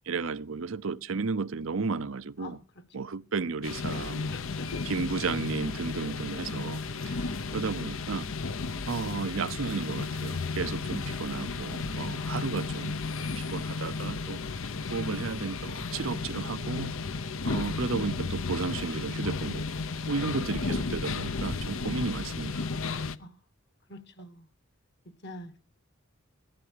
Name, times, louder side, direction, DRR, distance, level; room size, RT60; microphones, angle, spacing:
voice 1, 0.1-2.6 2.9-4.4 4.8-8.3 8.9-13.0 13.4-14.4 14.9-16.9 17.4-19.6 20.1-22.7, right 4 dB, 70° right, 0.7 m, -33 dB
voice 2, 2.4-2.8 3.9-4.7 6.0-6.5 11.1-11.2 20.2-20.4 23.2-23.4 23.9-24.5 25.0-25.5, left 1 dB, 50° left, 1.5 m, -46 dB
sound 1, 3.6-23.2, left 4 dB, 70° left, 0.8 m, -33 dB
15.5 x 11.5 x 6.6 m
head